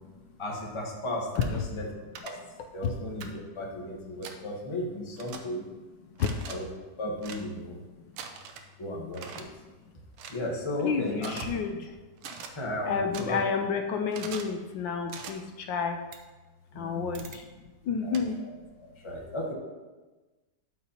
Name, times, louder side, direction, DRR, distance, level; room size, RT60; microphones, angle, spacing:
voice 1, 0.4-1.8 2.2-2.4 2.7-5.7 6.5-6.7 7.0-7.8 8.8-9.5 10.3-11.4 12.5-13.4 16.7-17.2 18.0-18.5 19.0-19.5, left 1 dB, 20° left, -2 dB, 1.0 m, -35 dB
sound 1, 1.3-1.5 2.1-2.3 3.2-3.3 4.2-4.4 5.2-5.4 6.1-6.5 7.2-7.4 8.2-8.7 9.1-9.4 10.2-10.4 11.2-11.5 12.2-12.5 13.1-13.2 14.1-14.5 15.1-15.3 16.1-16.2 17.1-17.4 18.1-18.2, right 7 dB, 85° right, 1.5 m, -42 dB
voice 2, 10.8-12.0 12.8-16.0 16.7-17.5 17.8-18.4, left 6 dB, 75° left, 4 dB, 1.3 m, -30 dB
12.0 x 5.7 x 2.9 m, 1.2 s
omnidirectional pair, 2.1 m